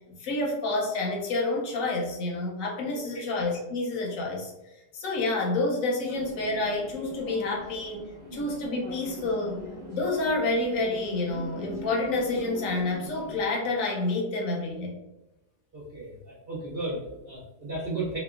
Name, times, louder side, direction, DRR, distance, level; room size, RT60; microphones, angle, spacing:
voice 1, 0.0-4.5 4.9-8.1 8.3-9.6 9.9-15.0, left 2 dB, 70° left, -1 dB, 0.9 m, -29 dB
sound 1, 6.1-13.5, left 1 dB, 15° right, 0.9 m, -41 dB
voice 2, 15.7-18.2, right 2 dB, 80° right, -5 dB, 0.5 m, -34 dB
2.9 x 2.1 x 2.3 m, 0.96 s
omnidirectional pair, 1.7 m